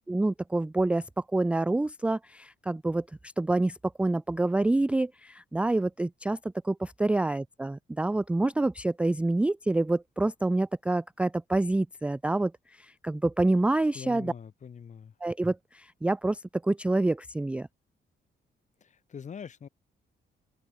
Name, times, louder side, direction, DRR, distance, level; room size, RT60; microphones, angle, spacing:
voice 1, 0.1-1.1 1.3-14.3 15.2-17.7, right 2 dB, 5° right, 0.3 m, -27 dB
voice 2, 13.9-15.1 18.8-19.7, left 7 dB, 40° left, 4.4 m, -43 dB
open air
wide cardioid pair, 175°, 19 cm